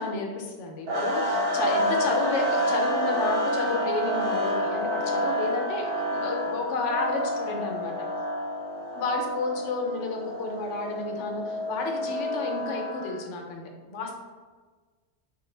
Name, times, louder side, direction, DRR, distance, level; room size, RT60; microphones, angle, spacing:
voice 1, 0.0-7.9 9.0-13.6 13.9-14.2, left 3 dB, 80° left, 2 dB, 0.9 m, -31 dB
sound 1, 0.9-13.2, equal, 60° right, 0.8 m, -28 dB
3.1 x 2.1 x 3.2 m, 1.4 s
omnidirectional pair, 1.2 m